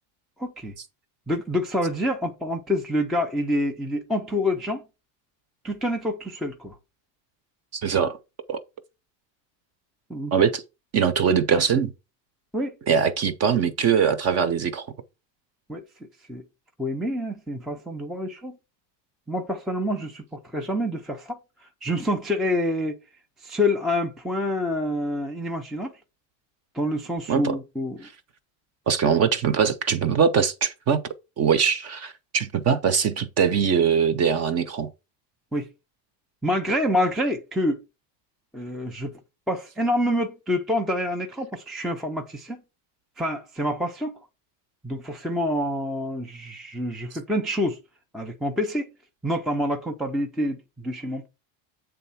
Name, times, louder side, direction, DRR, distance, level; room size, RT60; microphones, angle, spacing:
voice 1, 0.4-0.7 1.3-4.8 5.6-6.7 10.1-10.3 11.5-11.6 12.5-12.7 15.7-15.8 16.3-16.4 16.8-18.6 19.3-21.4 21.8-23.0 23.4-25.9 26.7-28.1 35.5-35.7 36.4-37.8 38.5-39.1 39.5-42.6 43.2-44.2 44.8-47.8 48.1-48.9 49.2-51.3, left 1 dB, ahead, 0.4 m, -27 dB
voice 2, 7.7-8.2 8.5-8.6 10.3-10.6 10.9-11.9 12.9-14.9 27.3-27.6 28.9-31.0 31.4-34.9, right 7 dB, 30° right, 0.7 m, -22 dB
8.4 x 3.4 x 5.5 m
cardioid pair, 160°, 49 cm